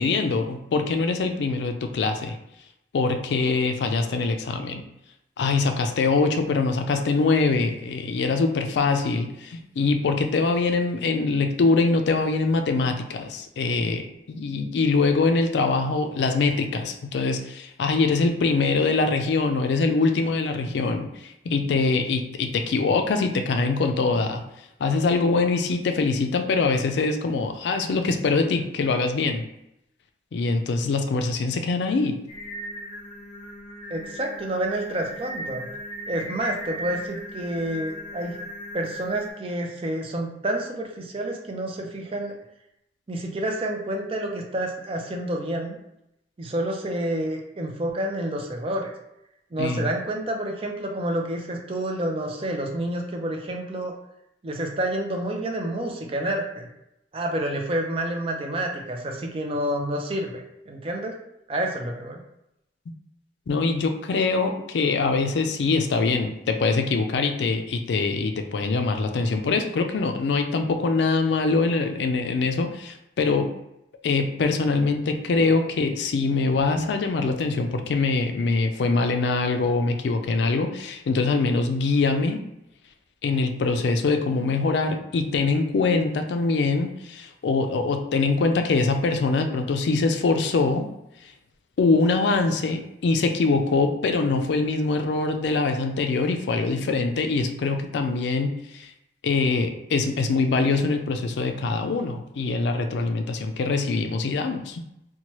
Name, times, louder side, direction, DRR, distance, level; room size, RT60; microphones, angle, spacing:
voice 1, 0.0-2.4 2.9-4.8 5.4-24.4 24.8-29.4 30.3-32.2 49.6-49.9 63.5-73.5 74.0-82.4 83.2-90.8 91.8-98.9 99.2-104.8, left 3 dB, 70° left, 6 dB, 0.3 m, -23 dB
Singing, 32.3-39.3, equal, 35° left, 1.3 m, -37 dB
voice 2, 33.9-35.7 36.1-38.4 38.7-42.3 43.1-45.8 46.4-48.9 49.5-53.9 54.4-56.7 57.1-61.2 61.5-62.2, right 1 dB, 30° right, 1 dB, 0.4 m, -29 dB
2.9 x 2.2 x 2.9 m, 0.83 s
head